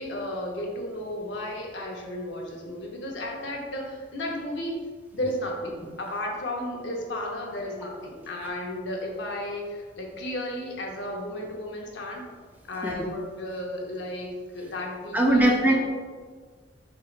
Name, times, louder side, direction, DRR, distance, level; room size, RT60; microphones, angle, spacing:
voice 1, 0.0-4.8 5.1-12.2 12.7-15.8, left 1 dB, 75° left, 0 dB, 0.7 m, -33 dB
voice 2, 15.1-15.8, right 1 dB, 10° right, 0 dB, 0.4 m, -20 dB
4.6 x 3.0 x 2.4 m, 1.5 s
head